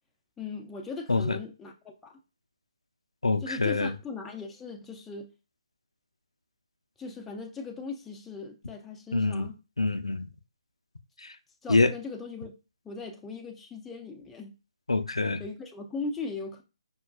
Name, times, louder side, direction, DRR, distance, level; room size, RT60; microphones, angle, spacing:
voice 1, 0.4-2.2 3.4-5.3 7.0-9.6 11.6-12.5 12.8-14.5 15.4-16.6, left 4 dB, 10° left, 0.4 m, -39 dB
voice 2, 3.2-3.9 9.1-9.5 9.8-10.3 11.2-11.4 11.7-11.9 14.9-15.4, left 3 dB, 85° left, 0.4 m, -25 dB
5.4 x 2.3 x 2.3 m
figure-of-eight pair, 140°, 3 cm